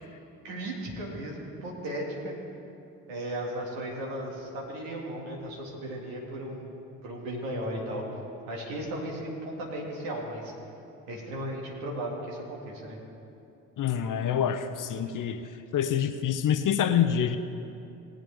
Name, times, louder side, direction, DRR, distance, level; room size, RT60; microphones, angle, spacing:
voice 1, 0.4-2.3 3.1-6.7 7.0-8.0 8.5-10.5 11.1-13.0 15.1-15.2, right 1 dB, 70° right, -1 dB, 2.2 m, -36 dB
voice 2, 13.8-17.4, left 9 dB, 40° left, 10 dB, 0.8 m, -27 dB
19.5 x 8.5 x 3.5 m, 2.7 s
figure-of-eight pair, 40°, 46 cm